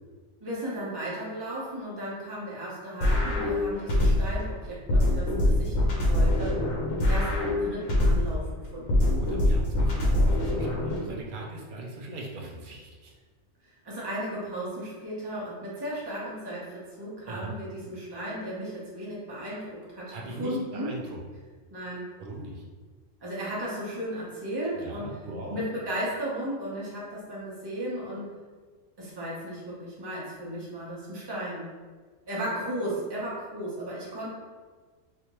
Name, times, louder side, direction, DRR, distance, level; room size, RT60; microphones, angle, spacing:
voice 1, 0.4-6.6 7.1-8.9 13.8-20.9 21.7-22.1 23.2-25.1 25.5-28.3 29.0-31.7 32.3-34.3, right 1 dB, 20° right, -7 dB, 0.8 m, -35 dB
sound 1, 3.0-4.4 4.9-8.4 8.9-11.0, left 1 dB, 80° left, 1.2 m, -24 dB
voice 2, 9.1-13.1 17.2-17.5 20.1-21.2 22.2-22.6 24.7-25.6, right 1 dB, 55° right, -1 dB, 0.6 m, -40 dB
3.3 x 2.8 x 3.0 m, 1.4 s
omnidirectional pair, 1.4 m